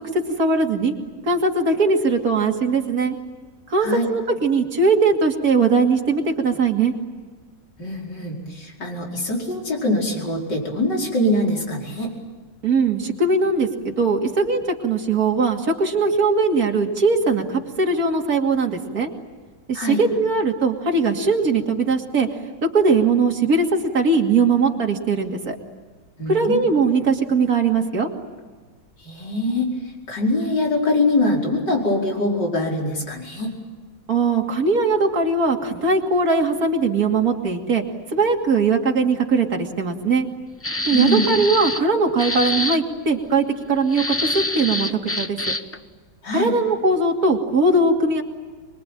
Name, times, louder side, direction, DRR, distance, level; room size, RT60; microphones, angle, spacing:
voice 1, 0.1-0.9 1.2-3.2 3.7-6.9 12.6-19.1 19.7-22.3 22.6-25.6 26.3-28.1 34.1-37.8 38.1-40.3 40.9-45.4 46.3-48.2, right 3 dB, 50° right, 2 dB, 3.0 m, -20 dB
voice 2, 7.8-12.1 19.7-20.0 26.2-26.7 29.0-29.7 30.1-33.5 40.9-41.2 46.2-46.5, left 1 dB, 60° left, -1 dB, 5.6 m, -23 dB
sound 1, 40.6-41.9 42.2-42.8 43.9-45.8, left 1 dB, 20° left, 0.3 m, -25 dB
25.5 x 22.5 x 9.1 m, 1.4 s
omnidirectional pair, 2.1 m